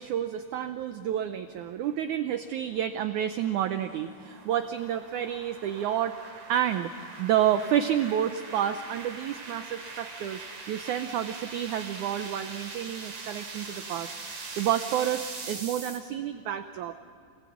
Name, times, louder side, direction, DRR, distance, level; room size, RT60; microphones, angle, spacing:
voice 1, 0.0-6.2 6.5-6.9 7.2-17.1, right 10 dB, 75° right, 9 dB, 1.8 m, -29 dB
sound 1, 2.0-16.0, right 3 dB, 40° right, 4.0 m, -42 dB
28.0 x 19.0 x 8.6 m, 2.3 s
omnidirectional pair, 4.4 m